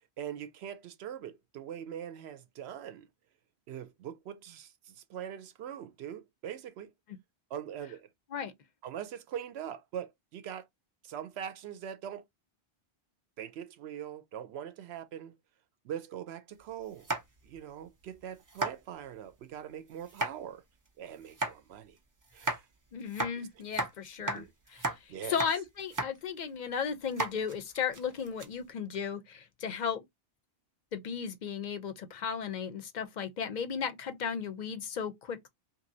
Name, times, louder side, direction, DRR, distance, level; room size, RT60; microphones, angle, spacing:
voice 1, 0.2-3.1 3.7-6.9 7.5-8.1 8.8-10.7 11.0-12.2 13.4-15.4 15.8-17.1 17.4-20.6 21.0-22.0 22.3-22.6 23.4-23.5 24.3-24.5 25.1-25.4, right 9 dB, 75° right, 0.8 m, -42 dB
sound 1, 17.0-17.6 18.0-18.1 18.5-18.7 20.0-20.3 21.2-21.5 22.3-22.6 23.1-23.9 24.3-24.4 24.7-25.0 25.2-25.5 25.8-26.1 26.5-26.6 27.1-28.5, right 2 dB, 35° right, 0.3 m, -34 dB
voice 2, 22.9-24.4 24.7-30.0 30.9-35.5, left 7 dB, 50° left, 0.6 m, -35 dB
3.0 x 2.6 x 2.6 m
omnidirectional pair, 1.1 m